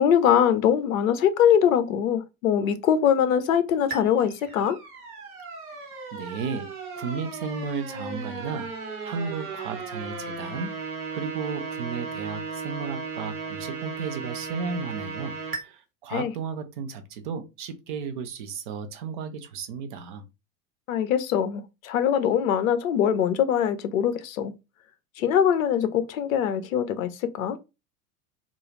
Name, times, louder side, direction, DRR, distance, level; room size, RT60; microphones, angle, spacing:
voice 1, 0.0-4.8 16.1-16.3 20.9-24.5 25.2-27.6, left 8 dB, 55° left, 0.6 m, -22 dB
sound 1, 3.9-15.6, right 4 dB, 60° right, 1.2 m, -36 dB
voice 2, 6.1-6.7 7.0-8.7 9.0-10.8 11.1-20.3, right 5 dB, 35° right, 0.4 m, -34 dB
2.4 x 2.3 x 3.0 m
figure-of-eight pair, 85°, 50 cm